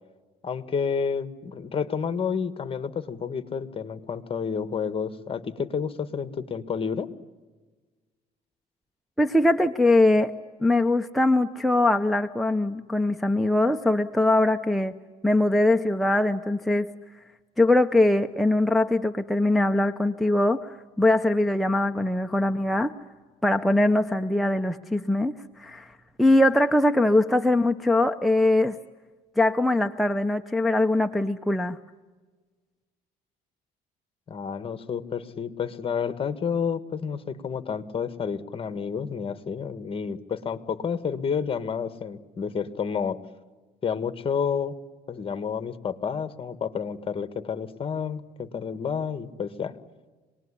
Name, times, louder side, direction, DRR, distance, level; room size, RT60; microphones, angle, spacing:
voice 1, 0.4-7.1 34.3-43.2 43.8-44.8 45.1-49.7, left 6 dB, 30° left, 12 dB, 1.6 m, -30 dB
voice 2, 9.2-15.0 15.2-16.9 17.6-22.9 23.4-25.9 26.2-28.8 29.4-31.8, left 2 dB, ahead, 4 dB, 0.8 m, -22 dB
26.5 x 20.0 x 9.9 m, 1.3 s
cardioid pair, 110°, 17 cm